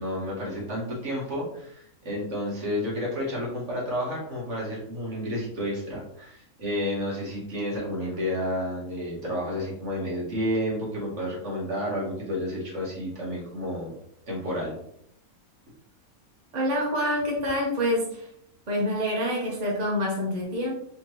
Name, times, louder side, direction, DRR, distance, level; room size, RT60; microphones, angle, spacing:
voice 1, 0.0-13.9 14.3-14.7, equal, 55° right, -4 dB, 1.6 m, -31 dB
voice 2, 16.5-18.3 18.7-20.7, equal, 35° right, -3 dB, 0.8 m, -26 dB
4.2 x 2.9 x 3.0 m, 0.71 s
omnidirectional pair, 1.5 m